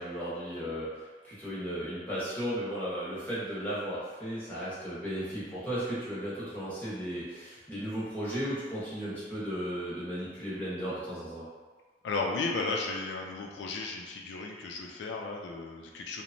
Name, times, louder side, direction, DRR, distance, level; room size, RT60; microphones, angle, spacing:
voice 1, 0.0-11.5, equal, 10° left, -10 dB, 0.8 m, -35 dB
voice 2, 12.0-16.2, left 3 dB, 85° left, 0 dB, 0.3 m, -34 dB
2.9 x 2.1 x 2.5 m, 1.4 s
head